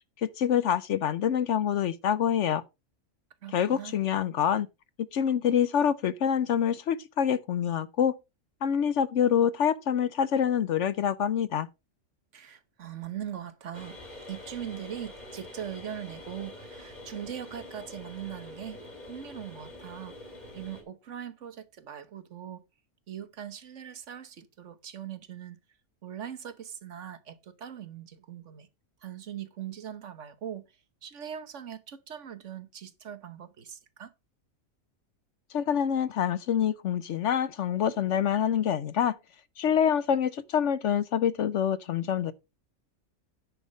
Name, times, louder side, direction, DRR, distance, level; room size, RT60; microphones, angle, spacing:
voice 1, 0.2-2.6 3.5-4.7 5.0-8.1 8.6-11.7 35.5-39.2 39.6-42.3, left 8 dB, 65° left, 0.9 m, -26 dB
voice 2, 3.4-4.0 12.3-14.0 14.3-18.8 19.1-20.2 20.5-22.6 23.1-25.6 26.0-28.7 29.0-30.7 31.0-34.1, right 9 dB, 60° right, 1.3 m, -41 dB
sound 1, 13.7-20.8, left 1 dB, 30° left, 3.7 m, -45 dB
9.9 x 5.8 x 5.2 m
omnidirectional pair, 1.5 m